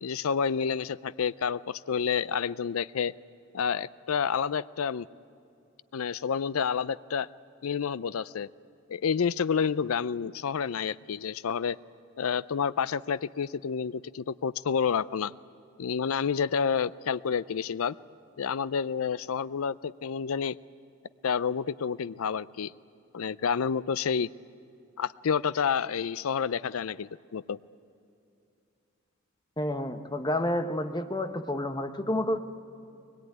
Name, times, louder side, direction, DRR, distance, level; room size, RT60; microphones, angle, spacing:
voice 1, 0.0-3.1 3.5-5.1 5.9-7.3 7.6-8.5 8.9-11.8 12.2-15.3 15.8-18.0 18.4-20.6 21.2-22.7 23.1-24.3 25.0-27.6, left 6 dB, 85° left, 18 dB, 0.5 m, -29 dB
voice 2, 29.6-32.4, left 1 dB, 20° left, 7 dB, 1.0 m, -29 dB
22.5 x 21.0 x 9.3 m, 2.6 s
head